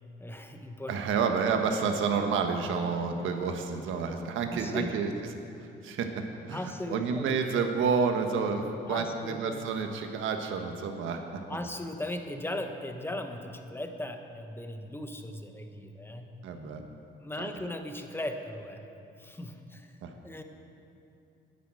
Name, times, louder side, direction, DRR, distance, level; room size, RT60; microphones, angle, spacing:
voice 1, 0.2-1.2 3.2-3.3 4.0-4.2 4.5-4.9 6.5-7.4 8.8-9.7 11.5-16.3 17.2-18.8 19.2-19.9 20.2-20.4, left 1 dB, 10° left, 5 dB, 1.2 m, -38 dB
voice 2, 0.9-5.1 5.8-11.4 16.4-16.8 17.4-17.5 20.0-20.1, right 5 dB, 80° right, 5 dB, 1.3 m, -29 dB
11.0 x 9.9 x 7.6 m, 2.8 s
cardioid pair, 90°, 20 cm